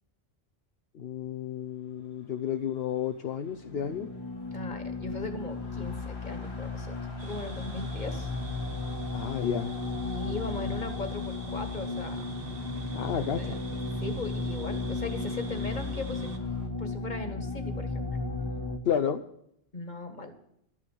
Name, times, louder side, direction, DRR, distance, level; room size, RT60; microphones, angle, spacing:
voice 1, 0.9-4.1 9.1-9.7 12.9-13.6 18.8-19.2, left 8 dB, 75° left, 5 dB, 1.0 m, -31 dB
sound 1, 1.9-16.7, left 2 dB, 90° left, 3.4 m, -54 dB
sound 2, 3.5-18.8, left 3 dB, 20° left, 1.3 m, -35 dB
voice 2, 4.5-7.0 7.2-8.3 10.0-12.3 13.4-13.6 14.0-16.3 16.7-18.1 19.7-20.3, left 2 dB, 45° left, 7 dB, 1.9 m, -38 dB
sound 3, 7.2-16.4, right 4 dB, 65° right, 1.6 m, -45 dB
13.0 x 9.9 x 7.6 m, 0.73 s
omnidirectional pair, 1.0 m